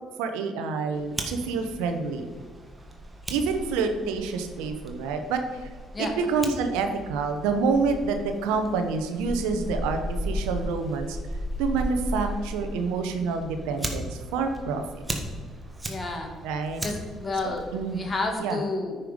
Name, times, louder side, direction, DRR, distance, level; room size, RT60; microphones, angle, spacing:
voice 1, 0.2-2.3 3.3-5.4 6.0-11.2 11.6-15.0 16.4-16.8 17.7-18.1 18.4-18.6, right 4 dB, 85° right, 7 dB, 0.9 m, -27 dB
Fire, 0.9-18.3, equal, 20° right, 1.7 m, -36 dB
voice 2, 15.9-16.3 16.8-17.6 17.9-19.0, left 3 dB, 30° left, 3 dB, 2.1 m, -30 dB
9.3 x 5.7 x 5.2 m, 1.5 s
supercardioid pair, 60°, 0 cm